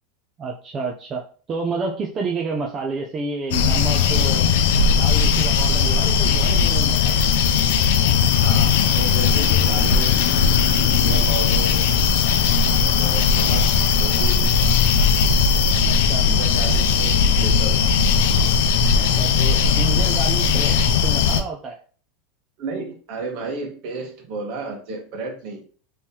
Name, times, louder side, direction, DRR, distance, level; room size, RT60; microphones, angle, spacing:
voice 1, 0.4-4.5 4.9-7.2 11.1-11.2 12.7-13.0 15.9-16.3 19.2-21.8, right 4 dB, 25° right, 0 dB, 0.5 m, -30 dB
sound 1, 3.5-21.4, left 6 dB, 80° left, 0.4 m, -18 dB
voice 2, 8.4-10.3 10.8-11.9 13.0-14.4 16.2-17.8 22.6-25.6, right 3 dB, 55° right, 2 dB, 1.2 m, -32 dB
3.6 x 3.1 x 2.8 m, 0.41 s
supercardioid pair, 150°, 0 cm